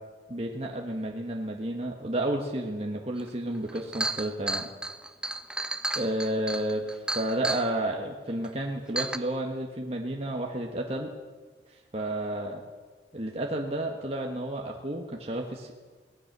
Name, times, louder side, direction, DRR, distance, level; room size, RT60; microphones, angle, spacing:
voice 1, 0.3-4.7 5.9-11.1 11.7-12.6 13.1-15.7, right 1 dB, 35° right, 0 dB, 1.5 m, -31 dB
Chink clink, 3.3-3.4 3.7-7.7 8.4-8.5 9.0-9.2, right 2 dB, 5° right, 0.8 m, -32 dB
23.5 x 18.0 x 6.8 m, 1.5 s
head